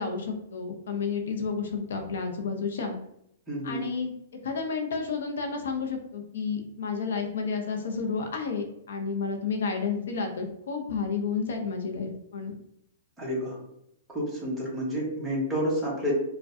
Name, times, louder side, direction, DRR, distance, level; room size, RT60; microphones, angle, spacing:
voice 1, 0.0-3.0 3.6-4.1 4.4-12.5, left 5 dB, 80° left, 4 dB, 0.7 m, -31 dB
voice 2, 3.5-3.8 13.2-13.6 14.1-16.1, equal, 5° right, -6 dB, 1.0 m, -29 dB
4.6 x 2.2 x 2.6 m, 0.77 s
hypercardioid pair, 160°, 0 cm